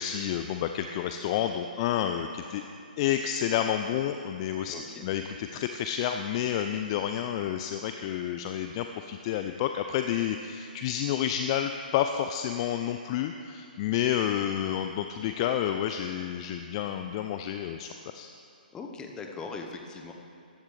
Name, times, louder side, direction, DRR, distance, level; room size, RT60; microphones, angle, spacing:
voice 1, 0.0-2.6 3.0-4.8 5.0-17.9 18.1-18.3, left 10 dB, 35° left, 6 dB, 0.4 m, -30 dB
voice 2, 4.7-5.1 18.7-20.1, left 4 dB, 15° left, 3 dB, 1.0 m, -40 dB
14.0 x 10.5 x 3.3 m, 2.5 s
figure-of-eight pair, 135°, 5 cm